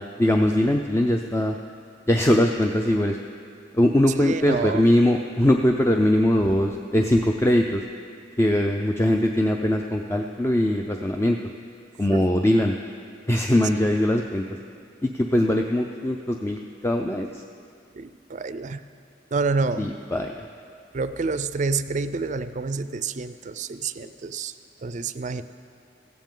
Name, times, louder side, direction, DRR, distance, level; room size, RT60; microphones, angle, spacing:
voice 1, 0.0-1.6 2.1-3.2 3.7-7.8 8.4-11.4 12.0-12.8 13.3-14.4 15.0-17.4 19.8-20.5, left 1 dB, 15° left, 3 dB, 0.4 m, -21 dB
voice 2, 4.2-4.8 12.1-12.2 18.0-18.8 19.3-19.9 20.9-25.4, right 4 dB, 40° right, 12 dB, 0.4 m, -28 dB
16.5 x 15.5 x 3.8 m, 2.4 s
head